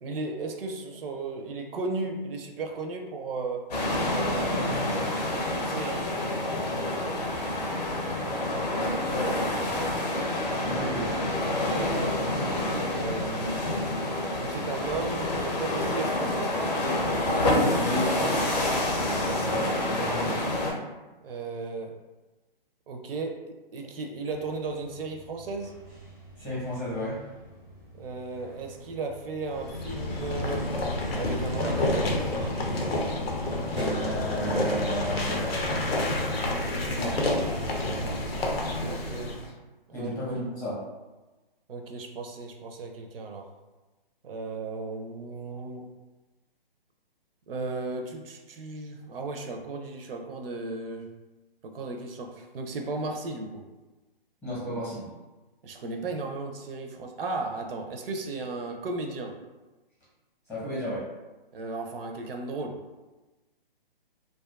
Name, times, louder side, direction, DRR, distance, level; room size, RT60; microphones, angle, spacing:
voice 1, 0.0-3.6 4.1-4.8 5.5-6.1 11.7-12.3 12.9-13.6 14.4-16.5 21.2-21.9 22.9-23.4 23.7-25.8 28.0-30.7 31.1-32.1 38.8-39.3 39.9-40.1 41.7-43.5 44.2-45.9 47.5-51.1 51.6-53.6 55.6-59.3 61.5-62.8, right 3 dB, 70° right, 3 dB, 0.5 m, -35 dB
sound 1, 3.7-20.7, left 1 dB, 45° left, 0.6 m, -28 dB
voice 2, 7.9-8.7 9.1-9.3 10.6-11.1 17.6-20.4 26.4-27.2 33.7-35.8 36.9-37.1 37.8-38.1 39.9-40.8 54.4-55.1 60.5-61.0, equal, 10° left, -10 dB, 0.7 m, -34 dB
sound 2, 24.3-37.1, left 1 dB, 10° right, 0.3 m, -44 dB
sound 3, 29.5-39.5, left 1 dB, 90° left, 0.6 m, -29 dB
2.4 x 2.3 x 2.3 m, 1.2 s
hypercardioid pair, 150°, 29 cm